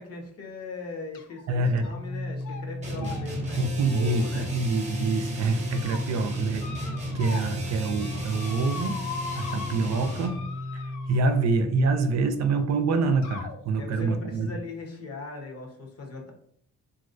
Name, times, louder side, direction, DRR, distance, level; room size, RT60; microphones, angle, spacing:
voice 1, 0.0-4.5 13.8-16.3, left 3 dB, 55° left, 1 dB, 0.9 m, -39 dB
sound 1, 1.1-1.4 1.8-2.1 2.4-2.6 3.0-4.9 5.4-6.0 6.6-7.6 7.8-11.4 12.4-12.5 13.2-13.6, left 6 dB, 80° left, 0.5 m, -41 dB
voice 2, 1.5-1.9 3.0-3.1 3.6-9.0 9.3-10.4 10.7-14.5, right 3 dB, 60° right, 7 dB, 0.5 m, -26 dB
Organ, 1.8-12.6, left 1 dB, 5° right, 0.4 m, -36 dB
sound 2, 2.8-10.4, right 1 dB, 25° right, 0.9 m, -37 dB
3.0 x 2.6 x 2.5 m, 0.64 s
cardioid pair, 90°, 30 cm